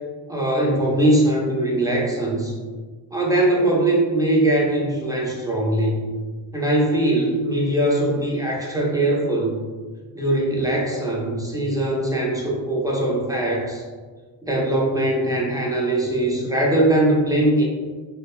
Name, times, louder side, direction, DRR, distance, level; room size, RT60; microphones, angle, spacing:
voice 1, 0.3-2.5 3.1-6.1 6.5-9.6 10.1-13.8 14.4-17.6, right 1 dB, 10° right, -3 dB, 0.4 m, -21 dB
2.1 x 2.0 x 3.0 m, 1.4 s
cardioid pair, 110°, 48 cm